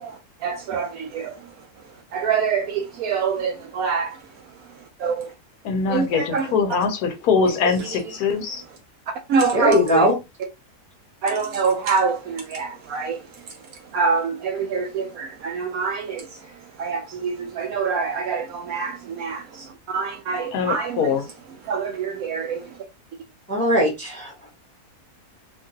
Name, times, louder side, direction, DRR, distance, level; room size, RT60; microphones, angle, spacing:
voice 1, 0.0-1.5 2.1-4.2 5.0-5.3 5.9-6.5 7.6-7.7 9.3-10.1 11.2-13.5 13.9-21.1 21.6-22.8, right 5 dB, 75° right, 1.0 m, -26 dB
voice 2, 5.6-8.6 20.5-21.3, left 5 dB, 90° left, 1.2 m, -22 dB
voice 3, 9.5-10.1 23.5-24.5, equal, 5° left, 0.8 m, -19 dB
2.9 x 2.4 x 2.7 m
omnidirectional pair, 1.6 m